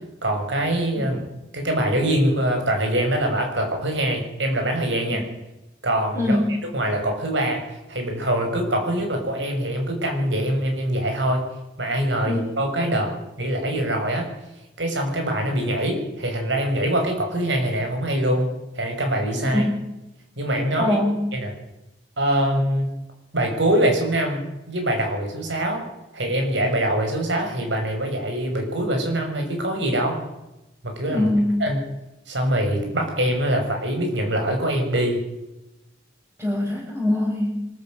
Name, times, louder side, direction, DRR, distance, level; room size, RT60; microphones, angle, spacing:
voice 1, 0.2-1.2 1.5-5.2 5.8-6.4 6.7-7.6 7.9-11.4 11.8-13.1 13.4-14.3 14.8-18.5 18.7-19.6 20.4-21.0 21.3-21.5 22.2-22.9 23.3-25.8 26.1-30.2 30.8-31.3 31.6-31.8 32.3-35.2, right 1 dB, 75° right, 3 dB, 6.6 m, -23 dB
voice 2, 6.1-6.5 12.2-12.4 19.4-19.8 20.8-21.3 31.1-31.6 36.4-37.7, left 1 dB, 15° right, -6 dB, 5.9 m, -23 dB
25.0 x 14.0 x 7.9 m, 0.96 s
head